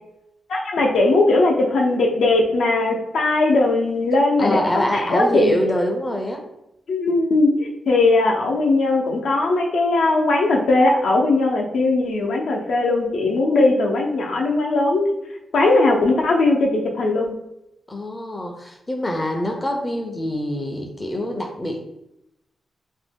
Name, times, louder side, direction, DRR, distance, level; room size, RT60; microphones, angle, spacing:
voice 1, 0.5-5.6 6.9-15.1 15.5-17.3, left 2 dB, 75° left, 0 dB, 0.6 m, -19 dB
voice 2, 4.4-6.4 17.9-21.8, left 1 dB, 15° left, 3 dB, 0.4 m, -24 dB
2.8 x 2.6 x 3.5 m, 0.85 s
wide cardioid pair, 175°, 0 cm